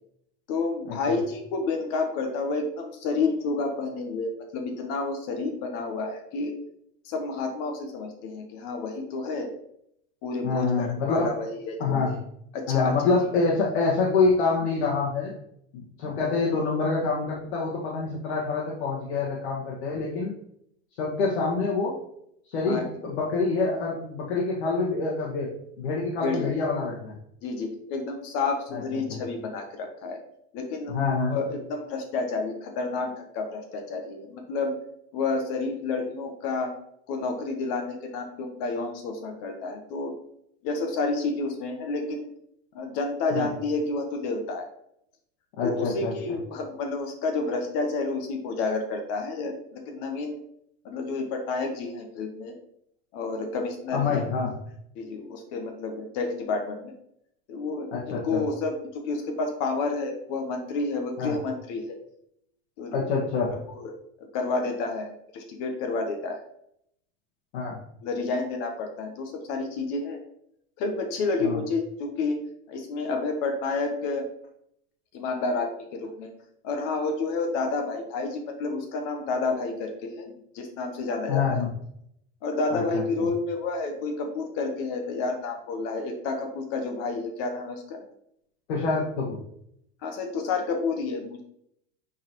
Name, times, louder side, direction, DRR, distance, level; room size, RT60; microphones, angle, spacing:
voice 1, 0.5-6.5 7.0-9.5 10.2-12.1 12.5-13.1 22.7-22.9 26.2-26.5 27.4-30.2 30.5-31.0 31.3-34.8 35.1-36.7 37.1-40.2 40.6-42.2 42.7-44.7 45.6-50.4 50.8-52.5 53.1-54.2 55.0-56.9 57.5-62.0 62.8-63.1 63.7-63.9 64.2-66.5 68.0-70.2 70.8-72.4 72.7-74.3 75.1-76.3 76.6-81.6 82.4-88.0 90.0-91.4, left 3 dB, 45° left, 4 dB, 1.0 m, -30 dB
voice 2, 10.4-11.4 11.8-12.1 12.7-15.3 15.7-20.3 21.0-22.0 22.5-25.5 25.8-27.1 28.7-28.8 30.9-31.3 43.3-43.5 45.6-46.1 53.9-54.5 57.9-58.4 61.2-61.4 62.9-63.5 67.5-67.8 71.4-71.6 81.3-81.7 82.7-83.3 88.7-89.4, left 4 dB, 75° left, -4 dB, 1.7 m, -26 dB
8.4 x 4.1 x 3.0 m, 0.73 s
supercardioid pair, 150°, 32 cm